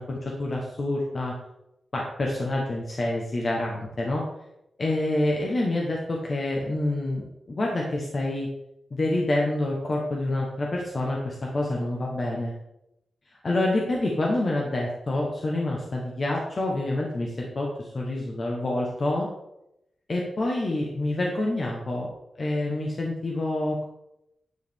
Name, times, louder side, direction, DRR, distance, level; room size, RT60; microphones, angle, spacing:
voice 1, 0.0-1.3 1.9-4.2 4.8-8.5 8.9-12.5 13.3-19.3 20.1-22.1 22.3-23.8, left 2 dB, 40° left, -2 dB, 1.0 m, -27 dB
9.4 x 4.8 x 3.5 m, 0.85 s
wide cardioid pair, 155°, 0 cm